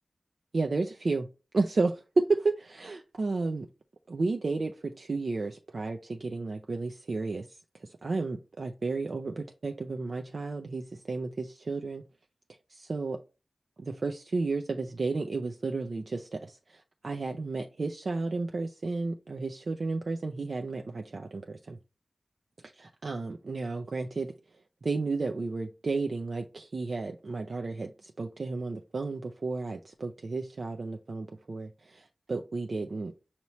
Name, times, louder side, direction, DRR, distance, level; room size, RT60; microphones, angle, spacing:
voice 1, 0.5-1.3 1.5-3.7 4.1-12.0 12.7-13.2 13.8-21.8 22.7-24.3 24.8-33.1, right 3 dB, 65° right, 0.4 m, -32 dB
5.7 x 2.9 x 3.0 m
wide cardioid pair, 60°, 0 cm